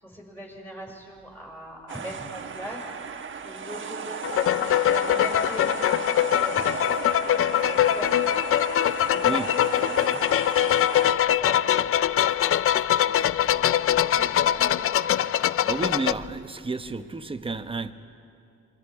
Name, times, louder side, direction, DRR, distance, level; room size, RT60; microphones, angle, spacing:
voice 1, 0.0-2.8 3.4-8.4 9.0-14.9 15.1-15.2, equal, 5° left, 6.0 m, -41 dB
sound 1, 1.9-11.1, right 6 dB, 40° right, 1.3 m, -35 dB
sound 2, 4.2-16.1, left 11 dB, 45° left, 0.5 m, -23 dB
voice 2, 15.6-17.9, right 3 dB, 20° right, 1.1 m, -31 dB
27.0 x 22.0 x 5.0 m
cardioid pair, 90°, 30 cm